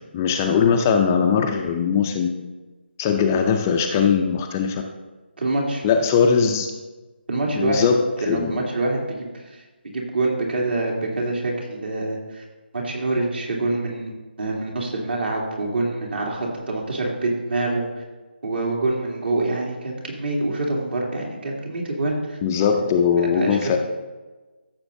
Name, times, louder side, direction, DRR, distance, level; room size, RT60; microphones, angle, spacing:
voice 1, 0.1-2.3 3.0-4.8 5.8-6.7 7.6-8.5 22.4-23.8, left 6 dB, 15° left, 3 dB, 0.3 m, -20 dB
voice 2, 5.4-5.8 7.3-7.9 8.2-9.6 9.9-12.4 12.7-14.1 14.4-18.0 18.4-22.4 23.2-23.8, right 2 dB, 70° right, -2 dB, 2.8 m, -25 dB
14.5 x 7.0 x 2.6 m, 1.2 s
figure-of-eight pair, 165°, 6 cm